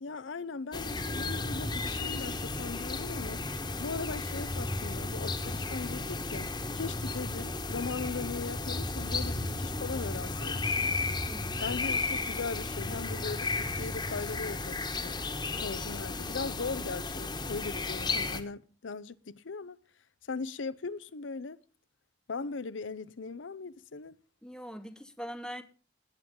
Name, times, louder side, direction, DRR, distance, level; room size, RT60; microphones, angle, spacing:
voice 1, 0.0-3.4 3.8-6.5 6.7-10.9 11.6-15.1 15.6-19.8 20.3-21.6 22.3-24.2, left 4 dB, 85° left, 0.7 m, -39 dB
sound 1, 0.7-18.4, left 3 dB, 20° left, 1.3 m, -34 dB
voice 2, 11.3-11.7 24.4-25.6, equal, 5° left, 1.2 m, -42 dB
19.5 x 8.8 x 3.8 m
head